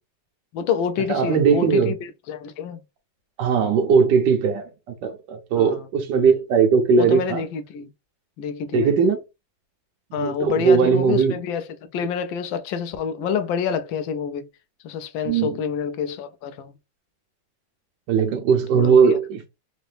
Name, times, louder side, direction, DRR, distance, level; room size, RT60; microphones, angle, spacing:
voice 1, 0.5-2.8 5.5-5.9 7.0-7.9 8.4-8.9 10.1-14.5 14.8-16.7 18.7-19.2, left 7 dB, 85° left, 1.4 m, -27 dB
voice 2, 1.1-1.9 3.4-4.7 5.0-7.4 8.7-9.2 10.1-11.3 15.3-15.5 18.1-19.5, right 5 dB, 70° right, 1.3 m, -19 dB
4.0 x 2.7 x 3.2 m
omnidirectional pair, 2.0 m